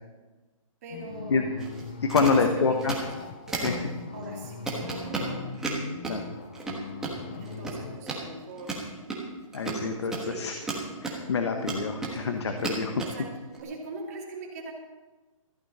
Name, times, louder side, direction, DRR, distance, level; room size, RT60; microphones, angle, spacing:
voice 1, 0.8-1.4 2.2-2.9 3.5-3.6 4.1-5.6 7.4-9.0 9.9-10.5 13.0-13.3 13.6-14.7, right 2 dB, 30° right, -1 dB, 2.7 m, -40 dB
sound 1, 0.9-8.0, left 5 dB, 15° left, 0.4 m, -40 dB
sound 2, 1.6-1.8 2.1-2.4 2.8-3.1 3.5-3.8 4.2-4.3 4.7-6.2 6.5-7.1 7.4-7.7 8.0-8.2 8.5-11.2 11.6-12.2 12.6-13.1 13.5-13.6, right 3 dB, 5° right, 1.4 m, -33 dB
voice 2, 2.0-3.0 3.6-3.8 6.1-6.3 9.5-10.6 11.0-13.0, left 4 dB, 50° left, 5 dB, 1.3 m, -26 dB
14.5 x 14.0 x 4.3 m, 1.2 s
hypercardioid pair, 175°, 18 cm